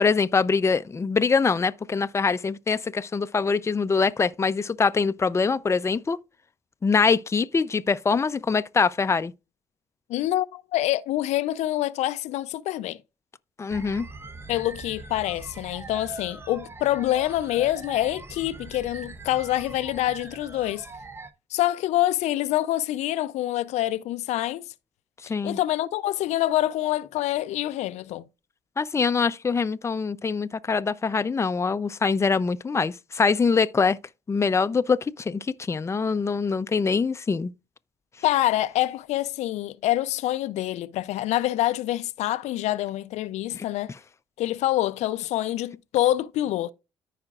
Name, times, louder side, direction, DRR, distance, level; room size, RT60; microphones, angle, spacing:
voice 1, 0.0-6.2 6.8-9.3 13.6-14.1 25.3-25.6 28.8-34.0 34.3-37.5 43.5-43.6, left 5 dB, 25° left, 0.5 m, -24 dB
voice 2, 10.1-13.0 14.5-20.9 21.5-24.6 25.4-28.2 38.2-43.9 44.4-46.7, left 14 dB, 85° left, 0.4 m, -26 dB
sound 1, 13.7-21.3, right 3 dB, 20° right, 0.8 m, -41 dB
14.0 x 4.9 x 2.4 m
cardioid pair, 85°, 11 cm